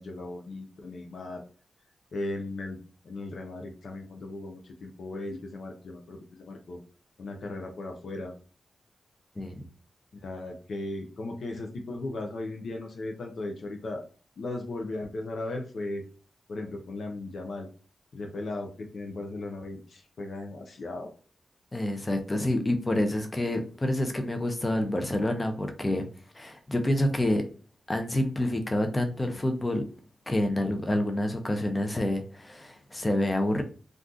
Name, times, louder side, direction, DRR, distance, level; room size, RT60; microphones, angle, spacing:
voice 1, 0.0-1.4 2.1-2.8 3.0-6.8 7.2-8.3 10.2-14.0 14.4-16.0 16.5-17.7 18.1-21.1, left 2 dB, 75° left, 2 dB, 0.6 m, -37 dB
voice 2, 9.4-9.7 21.7-26.1 26.3-27.4 27.9-29.8 30.3-33.6, left 1 dB, 25° left, 5 dB, 0.6 m, -28 dB
2.5 x 2.3 x 3.7 m, 0.38 s
cardioid pair, 55°, 0 cm